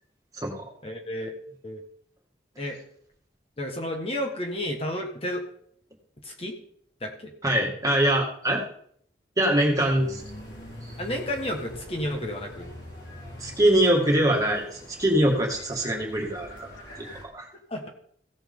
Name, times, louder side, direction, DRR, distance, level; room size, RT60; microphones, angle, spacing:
voice 1, 0.8-1.3 1.6-1.8 2.6-2.8 3.6-5.4 6.2-6.5 7.0-7.3 11.0-12.7 17.7-17.9, left 1 dB, 35° left, 2 dB, 1.4 m, -31 dB
voice 2, 7.4-8.6 9.4-10.2 13.4-16.7 17.2-17.5, right 1 dB, 20° right, -1 dB, 2.3 m, -23 dB
sound 1, 9.8-17.2, left 1 dB, 85° left, 4.7 m, -43 dB
16.5 x 6.9 x 3.8 m, 0.63 s
head